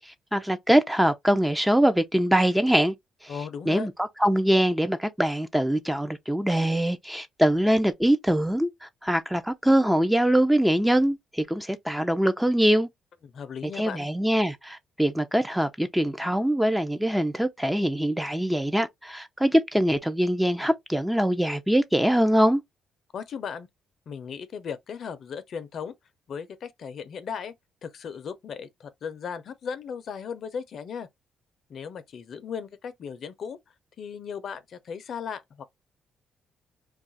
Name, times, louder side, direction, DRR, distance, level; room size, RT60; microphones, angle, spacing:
voice 1, 0.3-2.9 3.2-3.3 3.7-12.9 13.8-22.6, right 1 dB, 5° right, 0.5 m, -23 dB
voice 2, 3.3-3.9 13.3-14.1 23.1-23.7 24.1-25.9 26.3-27.5 27.8-31.1 31.7-33.6 34.0-35.7, left 6 dB, 60° left, 0.5 m, -36 dB
2.4 x 2.4 x 3.9 m
cardioid pair, 90°, 0 cm